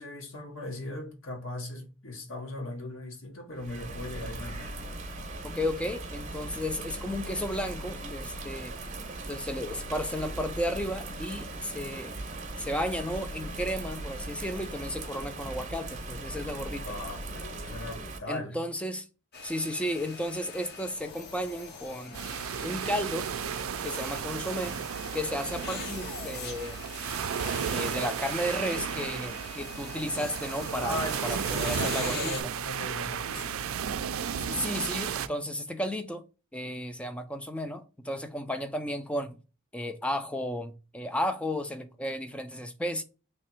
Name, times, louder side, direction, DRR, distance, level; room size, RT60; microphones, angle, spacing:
voice 1, 0.0-4.7 16.8-18.6 30.8-33.7, left 2 dB, 75° left, 1.1 m, -38 dB
Bird vocalization bird call bird song / Rain, 3.6-18.2, right 2 dB, 35° right, 0.7 m, -39 dB
voice 2, 5.4-8.7 9.3-12.1 12.6-16.9 18.3-19.1 19.4-22.2 22.6-23.3 23.8-24.8 25.1-26.8 27.7-32.4 34.4-36.2 36.5-39.4 39.7-43.0, equal, 5° left, 0.3 m, -33 dB
sound 1, 19.3-32.4, left 5 dB, 50° left, 0.7 m, -43 dB
sound 2, 22.1-35.3, right 7 dB, 90° right, 0.4 m, -34 dB
3.3 x 2.9 x 4.3 m
head